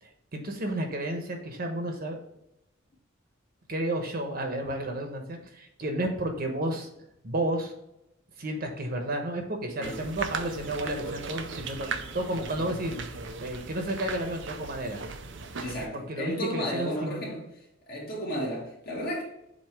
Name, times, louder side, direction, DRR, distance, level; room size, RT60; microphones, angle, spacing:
voice 1, 0.0-2.2 3.7-6.9 7.2-7.7 8.4-11.9 12.1-13.0 13.4-15.4 15.9-17.2, right 1 dB, 50° right, 1.0 m, -32 dB
sound 1, 9.8-15.9, right 4 dB, 65° right, 0.6 m, -38 dB
voice 2, 15.6-17.5 17.9-19.2, equal, 50° left, 2.2 m, -33 dB
7.4 x 2.9 x 4.8 m
head